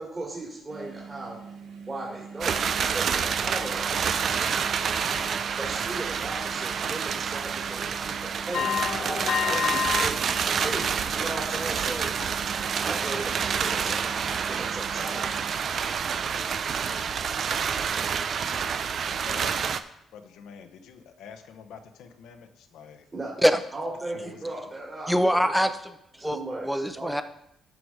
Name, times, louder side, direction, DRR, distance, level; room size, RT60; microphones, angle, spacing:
voice 1, 0.0-1.4 1.9-2.6 2.9-4.0 5.5-8.7 9.0-10.2 10.6-12.1 12.8-14.2 14.5-15.2 16.8-17.0 23.1-23.3 23.7-25.5 26.2-26.7 27.0-27.1, right 2 dB, 25° right, -4 dB, 3.0 m, -37 dB
sound 1, 0.7-15.6, right 6 dB, 75° right, 2.6 m, -44 dB
sound 2, 2.4-19.8, right 7 dB, 55° right, 0.6 m, -28 dB
sound 3, 8.5-10.1 10.5-11.1 11.5-11.7 12.2-12.3, left 7 dB, 60° left, 0.5 m, -28 dB
voice 2, 19.2-19.7 20.1-23.1 24.1-24.5, left 7 dB, 85° left, 6 dB, 1.0 m, -46 dB
voice 3, 25.1-27.2, equal, ahead, 10 dB, 0.8 m, -24 dB
13.0 x 5.0 x 4.8 m, 0.78 s
cardioid pair, 90°, 0 cm